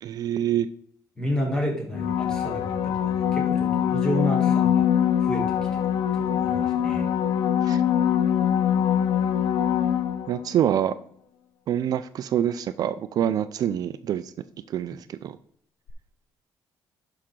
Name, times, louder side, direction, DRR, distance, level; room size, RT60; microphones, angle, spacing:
voice 1, 0.0-0.7 7.6-7.8 10.3-10.9 11.7-14.3 14.7-15.4, right 10 dB, 60° right, 13 dB, 0.4 m, -26 dB
voice 2, 1.2-4.9 5.2-5.8 6.1-7.1, equal, 10° left, -2 dB, 3.2 m, -31 dB
sound 1, 1.9-10.5 15.9-16.0, left 9 dB, 85° left, 0.7 m, -23 dB
11.0 x 5.7 x 3.8 m, 0.64 s
cardioid pair, 135°, 7 cm